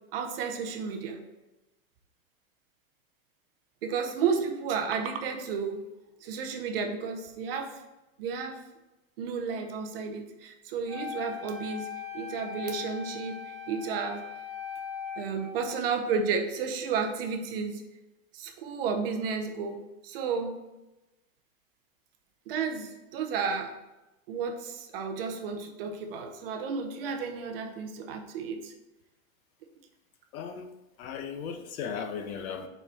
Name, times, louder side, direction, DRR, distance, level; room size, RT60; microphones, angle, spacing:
voice 1, 0.1-1.2 3.8-5.8 6.2-7.7 8.2-8.6 9.2-11.9 12.1-14.2 15.2-17.8 18.3-20.6 22.5-23.7 24.3-28.7, right 5 dB, 45° right, 5 dB, 0.7 m, -32 dB
Wind instrument woodwind instrument, 10.9-16.0, left 7 dB, ahead, 1.4 m, -40 dB
voice 2, 30.3-30.7 31.0-32.7, left 6 dB, 80° left, 7 dB, 1.0 m, -36 dB
5.9 x 4.4 x 4.1 m, 1.0 s
supercardioid pair, 180°, 42 cm